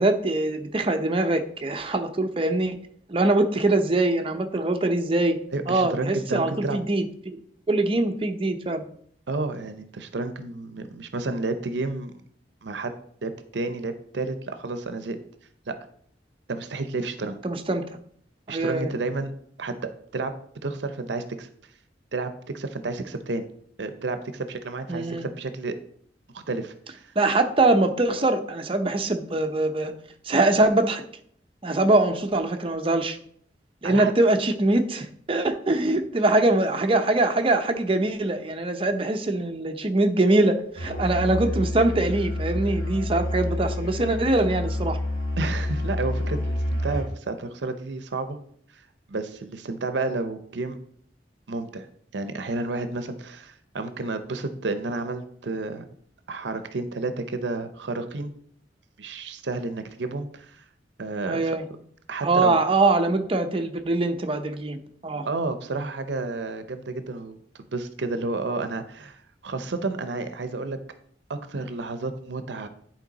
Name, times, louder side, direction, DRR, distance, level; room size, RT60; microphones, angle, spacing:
voice 1, 0.0-2.8 3.1-5.4 5.7-7.4 7.7-8.9 17.4-17.8 18.5-18.9 24.9-25.3 27.2-29.9 30.2-31.0 31.6-33.2 33.8-45.0 61.3-61.7 62.2-65.2, right 2 dB, 30° right, 6 dB, 0.7 m, -23 dB
voice 2, 5.5-6.8 9.3-12.1 12.6-12.9 13.2-15.2 15.7-15.8 16.5-17.4 18.5-19.3 19.6-20.3 20.6-21.5 22.1-23.5 23.8-25.8 26.3-27.1 33.8-34.1 45.4-48.4 48.7-50.8 51.5-51.9 52.1-55.8 56.3-58.3 59.0-60.6 61.0-61.4 62.1-62.6 65.2-67.4 67.7-70.8 71.3-72.7, right 3 dB, 75° right, 9 dB, 0.6 m, -31 dB
Musical instrument, 40.8-47.1, left 1 dB, 50° left, 3.3 m, -28 dB
10.0 x 4.5 x 4.0 m, 0.63 s
head